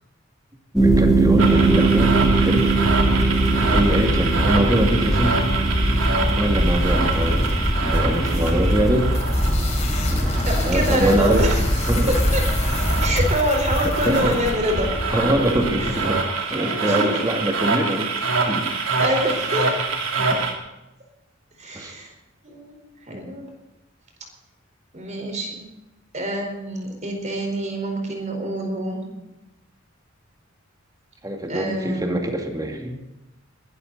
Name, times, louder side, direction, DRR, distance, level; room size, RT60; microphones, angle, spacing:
sound 1, 0.8-13.3, right 1 dB, ahead, 1.9 m, -20 dB
voice 1, 0.8-2.7 3.5-5.5 6.4-7.5 7.8-9.1 10.1-11.5 11.9-12.1 13.8-14.4 15.1-16.2 16.5-18.1 18.5-18.7 20.2-20.4 21.7-21.9 23.1-23.2 29.2-29.3 31.2-33.0, right 1 dB, 20° right, 3 dB, 2.4 m, -24 dB
sound 2, 1.4-20.5, right 4 dB, 90° right, 2.7 m, -26 dB
sound 3, 6.6-16.0, left 1 dB, 35° left, 4.0 m, -29 dB
voice 2, 10.4-11.6 12.1-12.4 13.0-14.9 15.8-16.0 16.5-17.2 19.0-19.7 21.6-22.1 22.4-22.8 23.1-23.5 24.9-25.7 26.1-29.0 31.5-32.1, equal, 35° right, 3 dB, 4.5 m, -26 dB
21.5 x 13.0 x 4.1 m, 0.95 s
head